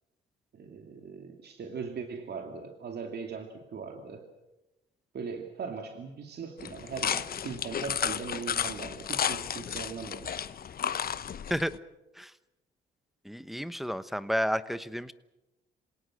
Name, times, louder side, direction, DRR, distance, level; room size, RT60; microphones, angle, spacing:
voice 1, 0.5-4.3 5.1-10.5, right 5 dB, 55° right, 4 dB, 2.6 m, -40 dB
sound 1, 6.6-11.8, left 8 dB, 50° left, 0.9 m, -33 dB
voice 2, 13.2-15.1, equal, ahead, 13 dB, 1.1 m, -31 dB
27.0 x 18.0 x 7.7 m, 1.0 s
cardioid pair, 90°, 20 cm